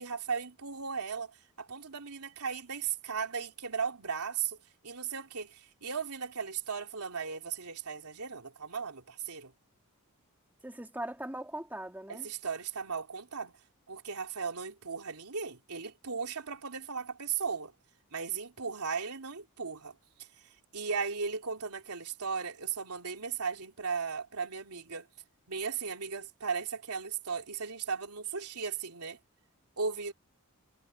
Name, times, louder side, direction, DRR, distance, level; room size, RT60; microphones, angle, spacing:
voice 1, 0.0-4.6 4.8-9.5 12.1-13.5 13.9-17.7 18.1-20.3 20.7-25.1 25.5-29.2 29.8-30.1, right 6 dB, 85° right, 3.3 m, -36 dB
voice 2, 10.6-12.3, right 1 dB, 10° right, 2.6 m, -40 dB
head